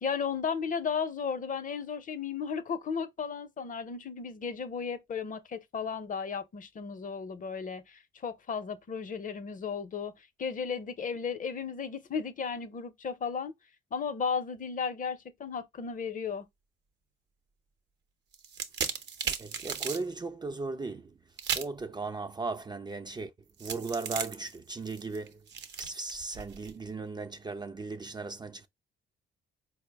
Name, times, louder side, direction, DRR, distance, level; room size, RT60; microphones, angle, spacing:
voice 1, 0.0-13.5 13.9-16.5, left 6 dB, 40° left, 0.6 m, -34 dB
sound 1, 18.3-20.0 21.4-21.8 23.6-26.7, right 7 dB, 60° right, 0.7 m, -35 dB
voice 2, 19.2-21.2 21.5-23.3 23.6-25.4 25.8-28.7, right 3 dB, 20° right, 0.4 m, -37 dB
4.4 x 2.1 x 3.3 m
cardioid pair, 90°, 20 cm